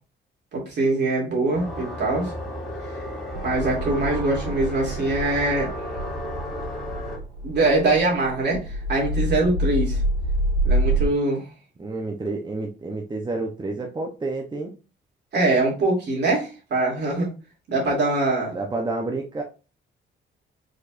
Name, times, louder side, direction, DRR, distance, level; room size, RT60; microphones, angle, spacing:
voice 1, 0.5-2.3 3.4-5.7 7.4-10.0 10.6-11.5 15.3-17.3 17.7-18.5, right 2 dB, 60° right, -2 dB, 2.8 m, -23 dB
sound 1, 1.5-7.2, equal, ahead, 2.6 m, -33 dB
sound 2, 3.3-11.1, right 1 dB, 85° right, 2.7 m, -27 dB
voice 2, 11.8-14.7 18.5-19.4, right 2 dB, 20° right, 2 dB, 0.8 m, -29 dB
5.0 x 4.1 x 2.5 m, 0.33 s
cardioid pair, 90°, 20 cm